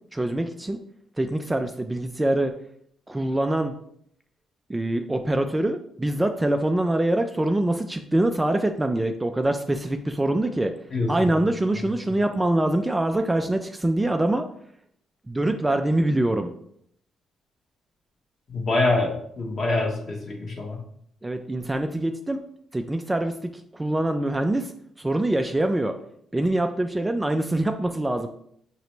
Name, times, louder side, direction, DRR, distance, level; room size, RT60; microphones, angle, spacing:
voice 1, 0.1-0.8 1.2-2.5 3.1-3.7 4.7-10.7 11.1-14.5 15.3-16.5 21.2-22.4 22.7-24.7 25.0-26.0 26.3-28.3, right 1 dB, 15° right, 6 dB, 0.3 m, -24 dB
voice 2, 18.5-20.8, left 2 dB, 45° left, 0 dB, 1.3 m, -25 dB
5.3 x 2.9 x 3.2 m, 0.68 s
cardioid pair, 90°, 0 cm